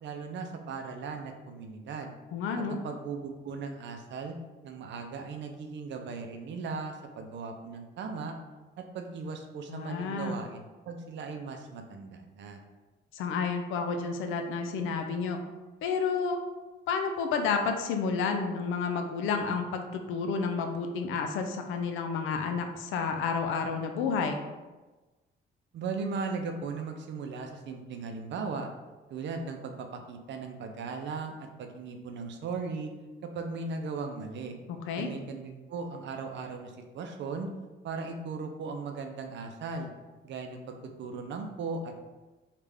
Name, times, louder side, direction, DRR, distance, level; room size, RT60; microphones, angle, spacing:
voice 1, 0.0-2.1 2.7-4.4 4.6-8.4 8.8-12.6 25.7-28.7 29.1-32.9 33.2-34.6 35.0-37.5 37.8-39.9 40.2-42.0, right 4 dB, 65° right, 5 dB, 0.5 m, -37 dB
voice 2, 2.3-2.8 9.7-10.4 13.1-15.4 15.8-16.4 16.9-24.4 34.7-35.1, left 5 dB, 90° left, 5 dB, 0.5 m, -30 dB
3.3 x 2.4 x 3.5 m, 1.2 s
cardioid pair, 90°, 20 cm